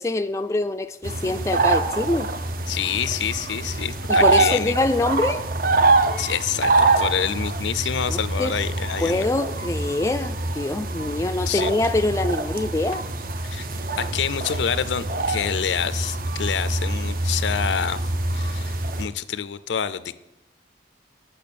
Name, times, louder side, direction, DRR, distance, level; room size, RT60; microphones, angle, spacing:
voice 1, 0.0-2.3 4.1-5.4 8.1-8.5 9.0-13.1, left 2 dB, 15° left, 0.3 m, -24 dB
sound 1, 1.0-19.1, right 3 dB, 50° right, 0.6 m, -25 dB
voice 2, 2.7-4.8 6.2-9.3 11.5-11.7 13.4-13.7 14.0-18.0 18.3-20.1, left 8 dB, 90° left, 0.5 m, -27 dB
8.4 x 6.4 x 6.8 m
head